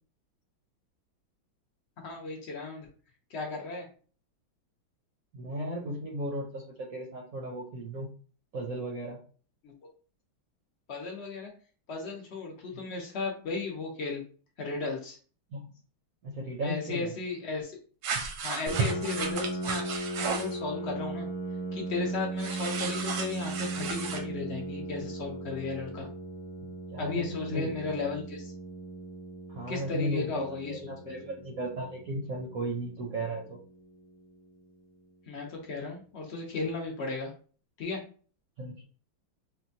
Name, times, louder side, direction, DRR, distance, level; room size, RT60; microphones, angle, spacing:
voice 1, 2.0-2.9 3.3-3.8 9.6-9.7 10.9-11.5 11.9-14.2 14.6-15.2 16.6-17.8 18.4-19.8 20.4-21.3 21.7-26.1 27.0-28.5 29.7-31.1 35.3-37.3 37.8-38.0, left 4 dB, 75° left, -1 dB, 0.6 m, -35 dB
voice 2, 5.3-8.1 8.5-9.2 15.5-15.6 16.2-17.1 26.9-28.1 29.5-33.6 38.6-38.8, right 1 dB, 65° right, -1 dB, 0.8 m, -35 dB
sound 1, 18.0-20.6 22.4-24.2, right 5 dB, 85° right, 1.5 m, -33 dB
Piano, 18.7-34.1, right 2 dB, 45° left, 1.2 m, -38 dB
4.2 x 2.2 x 2.6 m, 0.40 s
omnidirectional pair, 2.2 m